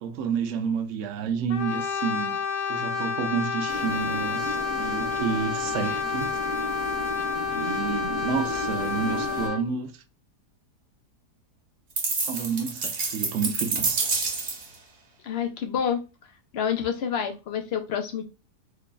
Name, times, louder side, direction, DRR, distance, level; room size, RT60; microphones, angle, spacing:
voice 1, 0.0-2.4 2.7-6.4 7.5-9.9 12.3-14.0, right 6 dB, 70° right, 0.7 m, -30 dB
Brass instrument, 1.5-9.7, left 6 dB, 85° left, 1.3 m, -29 dB
sound 1, 3.7-9.5, right 1 dB, 30° right, 0.7 m, -35 dB
sound 2, 12.0-14.7, right 4 dB, 50° right, 1.1 m, -28 dB
voice 2, 15.2-16.0 16.5-18.2, left 8 dB, 65° left, 0.6 m, -28 dB
3.2 x 2.2 x 3.7 m
omnidirectional pair, 1.7 m